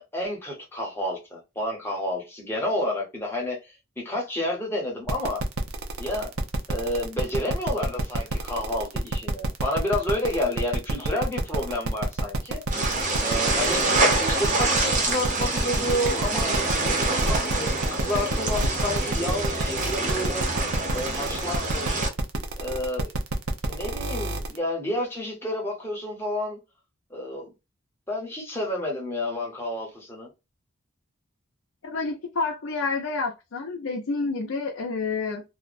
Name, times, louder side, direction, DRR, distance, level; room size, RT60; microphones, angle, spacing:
voice 1, 0.0-5.4 6.0-6.3 6.7-12.6 13.2-13.8 14.2-16.5 17.3-20.5 20.9-22.0 22.6-23.1 23.6-26.6 27.1-27.5 28.1-30.3, left 1 dB, 10° left, 0.8 m, -30 dB
sound 1, 5.1-24.6, right 3 dB, 85° right, 0.5 m, -29 dB
sound 2, 12.7-22.1, right 2 dB, 35° right, 0.7 m, -26 dB
voice 2, 31.8-35.4, left 4 dB, 65° left, 0.5 m, -29 dB
2.4 x 2.1 x 2.5 m
head